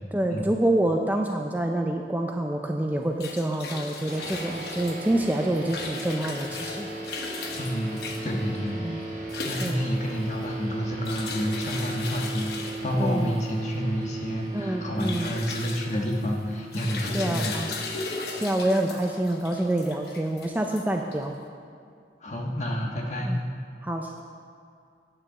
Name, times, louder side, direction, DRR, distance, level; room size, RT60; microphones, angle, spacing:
voice 1, 0.1-6.9 8.8-9.0 9.4-9.8 12.9-13.3 14.5-15.3 17.1-17.7 18.3-21.3 23.2-23.4 23.8-24.2, right 1 dB, 10° right, 2 dB, 0.4 m, -27 dB
sound 1, 2.9-21.4, left 4 dB, 65° left, 1.1 m, -38 dB
sound 2, 4.1-18.9, right 2 dB, 45° right, 2.3 m, -37 dB
voice 2, 7.6-8.7 9.4-17.5 18.3-18.4 22.2-23.4, equal, 40° left, 0 dB, 1.3 m, -29 dB
9.1 x 6.5 x 7.3 m, 2.3 s
head